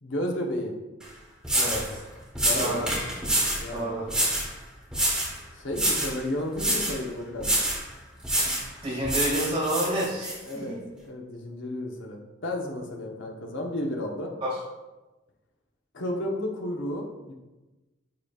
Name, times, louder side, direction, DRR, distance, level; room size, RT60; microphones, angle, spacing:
voice 1, 0.0-0.7 2.4-2.9 3.5-3.9 5.5-7.6 10.4-10.8 11.0-14.3 15.9-17.3, left 1 dB, 75° left, 0 dB, 1.1 m, -32 dB
sound 1, 1.0-1.1 1.4-1.9 2.4-3.7 4.1-4.5 4.9-5.4 5.7-6.2 6.6-7.0 7.4-7.8 8.2-8.7 9.1-10.4, right 1 dB, 5° right, 1.3 m, -26 dB
voice 2, 1.5-2.0 2.5-2.9 3.7-4.1 8.4-8.6 8.8-10.8 14.4-14.5, right 1 dB, 30° right, -6 dB, 2.3 m, -29 dB
9.6 x 5.1 x 2.5 m, 1.1 s
head